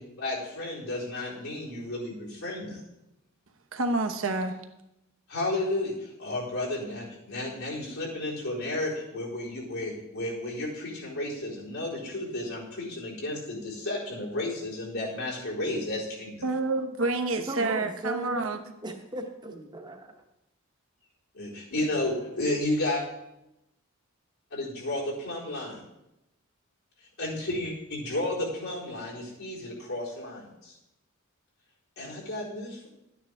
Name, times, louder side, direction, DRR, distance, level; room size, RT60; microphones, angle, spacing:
voice 1, 0.2-2.8 5.3-16.4 21.3-23.0 24.5-25.8 27.2-30.8 32.0-32.9, left 1 dB, 85° left, -6 dB, 4.3 m, -32 dB
voice 2, 3.7-4.6 16.4-18.6, right 2 dB, 70° right, 6 dB, 1.0 m, -28 dB
voice 3, 17.4-18.6 18.8-20.2, right 1 dB, 20° right, 4 dB, 0.9 m, -37 dB
12.5 x 9.4 x 3.5 m, 0.89 s
head